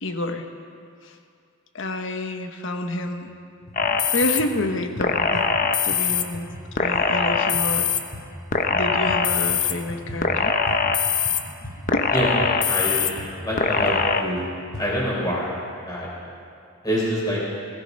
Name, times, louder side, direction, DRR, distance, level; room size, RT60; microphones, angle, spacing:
voice 1, 0.0-0.4 1.0-1.2 1.7-3.3 4.1-5.4 5.8-6.5 6.7-7.9 8.7-10.6 11.9-12.1, left 1 dB, 65° left, 6 dB, 1.1 m, -28 dB
sound 1, 3.1-3.2 3.6-4.0 4.2-9.2 9.5-14.9, equal, 80° left, 4.2 m, -39 dB
sound 2, 3.8-4.4 5.0-6.2 6.8-8.0 8.5-9.7 10.2-11.4 11.9-13.1 13.6-14.2, left 5 dB, 40° left, 0.8 m, -22 dB
voice 2, 12.7-13.1 13.4-13.9 14.2-14.4 14.8-15.5 15.9-16.1 16.8-17.4, equal, 20° left, -5 dB, 4.3 m, -25 dB
17.5 x 14.0 x 5.3 m, 2.3 s
head